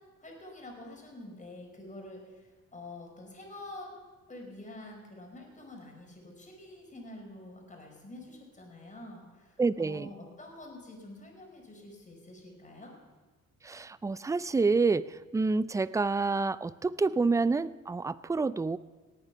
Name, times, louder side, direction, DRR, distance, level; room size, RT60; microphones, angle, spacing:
voice 1, 0.2-4.0 4.3-12.9, left 1 dB, 25° left, 1 dB, 4.8 m, -47 dB
voice 2, 9.6-10.1 13.6-18.8, right 4 dB, 10° right, 17 dB, 0.3 m, -28 dB
18.5 x 9.0 x 5.7 m, 1.3 s
cardioid pair, 90°, 30 cm